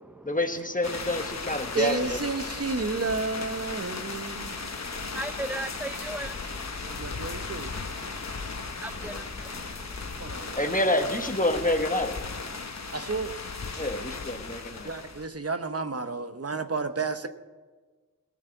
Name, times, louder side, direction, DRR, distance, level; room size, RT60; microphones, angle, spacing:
voice 1, 0.2-2.2 9.0-9.2 10.5-12.2 13.8-14.9, left 1 dB, 25° left, 1.2 m, -28 dB
sound 1, 0.8-15.3, left 4 dB, 50° left, 1.0 m, -36 dB
voice 2, 1.7-4.7 6.9-7.7 10.2-10.7 12.9-13.4 14.8-17.3, right 4 dB, 45° right, 0.9 m, -31 dB
voice 3, 4.4-10.5 12.5-12.6, right 1 dB, 5° right, 0.5 m, -40 dB
17.5 x 6.4 x 8.0 m
wide cardioid pair, 60°, 35 cm